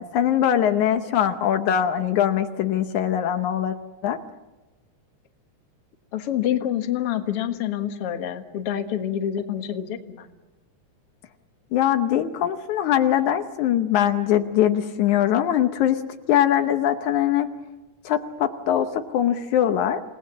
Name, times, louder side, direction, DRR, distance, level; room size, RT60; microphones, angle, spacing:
voice 1, 0.0-3.8 4.0-4.2 11.7-16.0 16.3-17.5 18.1-20.0, left 10 dB, 75° left, 7 dB, 2.3 m, -22 dB
voice 2, 6.1-10.3, left 10 dB, 55° left, 6 dB, 2.2 m, -27 dB
29.0 x 19.0 x 7.4 m, 1.1 s
omnidirectional pair, 3.5 m